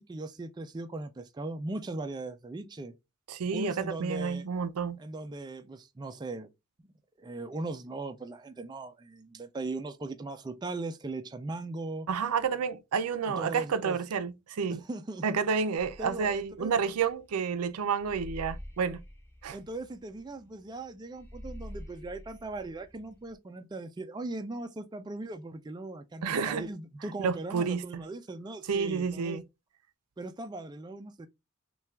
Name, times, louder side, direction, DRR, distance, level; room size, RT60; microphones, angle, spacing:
voice 1, 0.0-2.9 3.5-4.4 5.0-6.5 7.2-12.1 13.2-14.0 14.8-15.2 16.0-16.7 19.5-29.4 30.2-31.3, right 2 dB, 20° right, 0.3 m, -39 dB
voice 2, 3.3-5.0 12.1-14.8 15.2-19.0 19.4-19.6 26.2-26.6 27.2-28.0 28.7-29.4, right 6 dB, 85° right, 0.4 m, -30 dB
sound 1, 15.8-23.3, equal, 10° left, 0.8 m, -47 dB
5.6 x 2.3 x 2.3 m
head